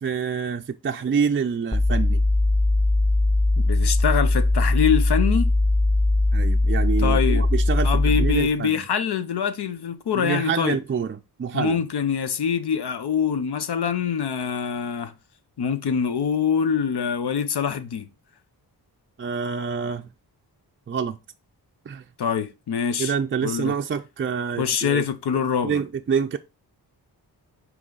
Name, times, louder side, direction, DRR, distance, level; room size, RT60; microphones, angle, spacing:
voice 1, 0.0-2.2 6.3-8.8 10.2-11.8 19.2-20.1 20.9-21.2 21.9-22.0 23.0-25.0 25.6-26.4, right 6 dB, 30° right, 0.4 m, -27 dB
sound 1, 1.7-8.5, left 2 dB, 15° left, 0.7 m, -20 dB
voice 2, 3.6-5.5 7.0-7.5 7.8-10.8 11.5-15.1 15.6-18.1 22.2-23.1 23.4-23.7 24.6-25.8, left 7 dB, 75° left, 0.9 m, -24 dB
6.1 x 4.8 x 3.9 m
wide cardioid pair, 100°, 40 cm